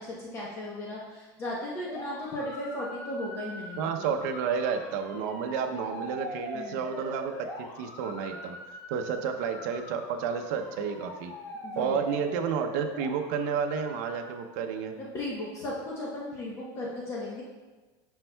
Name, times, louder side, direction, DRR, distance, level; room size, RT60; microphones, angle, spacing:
voice 1, 0.0-4.0 6.5-6.8 11.6-12.0 15.0-17.4, left 1 dB, 25° left, -4 dB, 0.9 m, -36 dB
sound 1, 1.8-14.3, left 1 dB, 60° left, 2.0 m, -42 dB
voice 2, 3.8-7.5 7.8-8.6 8.9-11.3 11.8-14.9, right 6 dB, 60° right, 5 dB, 0.6 m, -31 dB
10.5 x 5.4 x 2.3 m, 1.3 s
cardioid pair, 180°, 10 cm